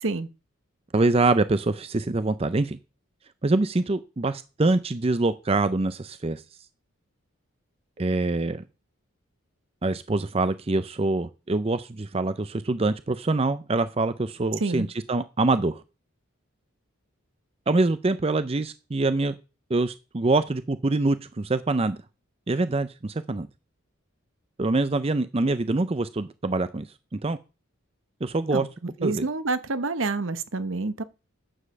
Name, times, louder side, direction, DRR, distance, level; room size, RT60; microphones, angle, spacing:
voice 1, 0.9-2.8 3.4-6.4 8.0-8.6 9.8-15.8 17.7-19.3 19.7-22.0 22.5-23.5 24.6-26.9 27.1-27.4 28.2-28.7 29.0-29.2, right 2 dB, 30° right, 0.5 m, -25 dB
voice 2, 29.0-31.0, right 3 dB, 65° right, 0.9 m, -27 dB
9.9 x 7.3 x 6.7 m
head